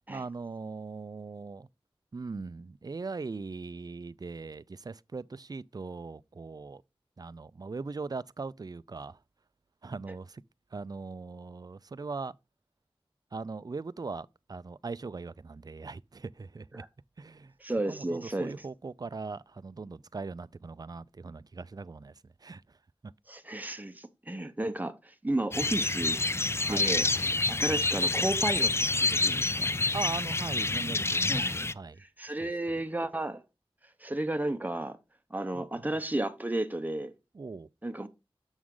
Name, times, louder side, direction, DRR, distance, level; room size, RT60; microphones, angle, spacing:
voice 1, 0.1-1.7 2.1-6.8 7.2-9.2 9.8-10.4 10.7-12.3 13.3-16.8 17.2-17.5 17.9-22.1 22.4-22.8 26.7-26.9 29.9-32.0 32.4-32.5 35.5-35.9 37.3-37.7, right 4 dB, 40° right, 0.4 m, -40 dB
voice 2, 17.6-18.5 23.3-26.2 26.7-28.7 29.0-29.7 31.3-31.6 32.0-33.4 34.0-35.0 35.3-37.1 37.8-38.1, right 1 dB, 15° right, 0.8 m, -33 dB
sound 1, 25.5-31.7, left 3 dB, 25° left, 0.3 m, -28 dB
7.1 x 6.2 x 3.7 m
wide cardioid pair, 40°, 10 cm